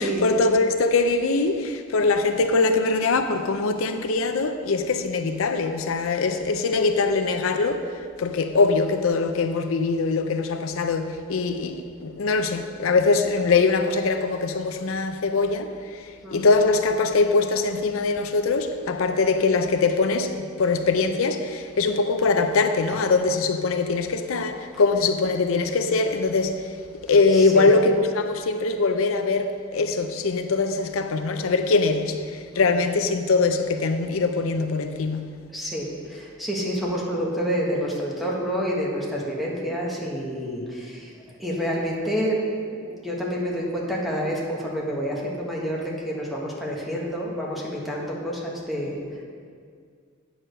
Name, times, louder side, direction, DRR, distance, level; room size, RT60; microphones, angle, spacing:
voice 1, 0.0-26.8 27.0-35.4, left 3 dB, 80° left, 0.5 m, -22 dB
voice 2, 27.3-27.7 32.5-32.9 35.5-49.2, equal, ahead, 1.5 m, -29 dB
8.9 x 4.8 x 6.5 m
head